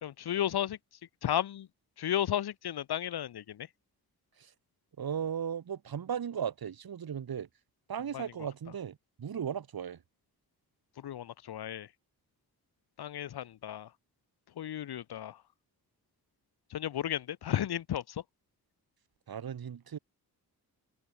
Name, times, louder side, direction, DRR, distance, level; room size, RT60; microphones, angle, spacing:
voice 1, 0.0-0.8 1.2-1.7 2.0-3.7 8.1-8.2 11.0-11.9 13.0-13.9 14.6-15.4 16.7-18.2, left 11 dB, 80° left, 1.1 m, -33 dB
voice 2, 5.0-7.5 7.9-10.0 19.3-20.0, right 8 dB, 70° right, 2.5 m, -36 dB
cardioid pair, 85°, 38 cm